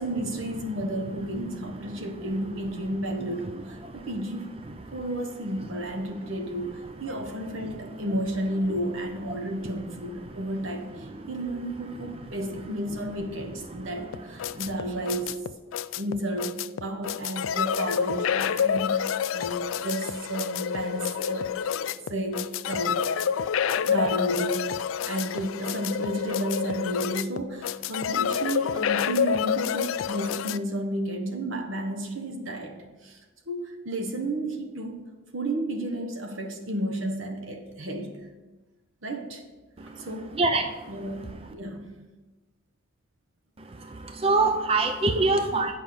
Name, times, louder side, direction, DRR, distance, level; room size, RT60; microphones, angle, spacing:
voice 1, 0.0-4.5 4.9-15.4 16.0-21.5 21.8-23.4 23.7-24.8 25.1-33.2 33.5-35.0 35.3-38.3 39.0-39.4 39.8-40.4 40.9-41.9 45.2-45.3, right 1 dB, 75° right, 4 dB, 1.2 m, -32 dB
sound 1, 14.1-30.6, left 8 dB, 75° left, 0.4 m, -28 dB
voice 2, 40.4-40.7 43.8-45.7, right 3 dB, 30° right, 6 dB, 0.4 m, -24 dB
8.2 x 5.6 x 6.6 m, 1.2 s
head